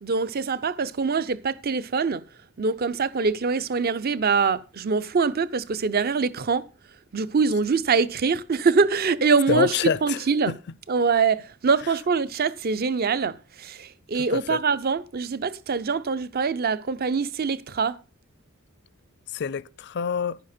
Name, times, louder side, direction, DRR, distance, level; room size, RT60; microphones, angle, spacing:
voice 1, 0.0-2.2 2.6-6.7 7.1-10.5 10.9-18.0, right 5 dB, 45° right, 0.6 m, -24 dB
voice 2, 9.5-10.2 10.5-10.6 14.3-14.6 19.3-20.4, left 6 dB, 50° left, 0.4 m, -26 dB
11.0 x 10.0 x 4.3 m
head